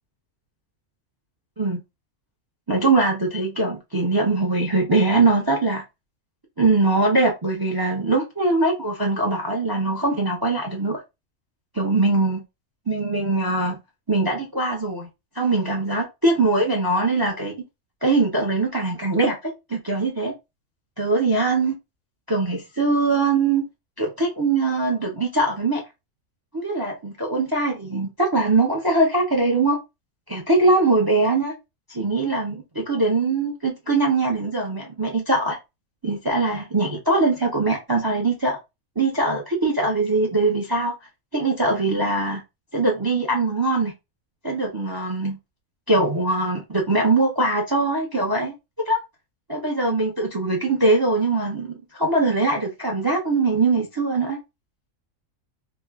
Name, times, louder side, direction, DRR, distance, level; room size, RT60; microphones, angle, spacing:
voice 1, 2.7-5.8 6.6-11.0 11.7-12.4 12.9-13.8 14.1-15.1 15.4-17.5 18.0-20.3 21.0-21.7 22.3-23.6 24.0-25.8 26.5-29.8 30.3-31.5 31.9-35.6 36.0-38.6 39.0-40.9 41.3-42.4 42.7-43.9 44.4-45.4 45.9-48.5 48.9-49.0 49.5-54.4, right 2 dB, 35° right, 0.3 m, -22 dB
2.9 x 2.2 x 3.4 m
omnidirectional pair, 1.4 m